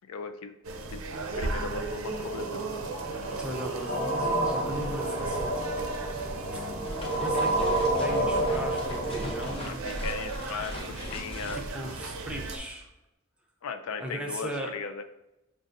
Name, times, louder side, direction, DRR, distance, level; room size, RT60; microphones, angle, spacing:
voice 1, 0.1-1.0 1.4-2.7 9.6-11.6 13.6-15.0, left 5 dB, 85° left, 8 dB, 0.4 m, -37 dB
sound 1, 0.6-12.6, right 3 dB, 75° right, 0.5 m, -37 dB
sound 2, 2.1-9.5, right 1 dB, 60° left, 1.2 m, -30 dB
voice 2, 3.4-5.5 5.8-6.6 7.2-9.8 11.5-12.9 14.0-14.7, equal, 5° right, 0 dB, 0.5 m, -38 dB
sound 3, 6.6-12.8, left 1 dB, 25° left, 0.7 m, -40 dB
6.3 x 2.5 x 2.5 m, 0.91 s
head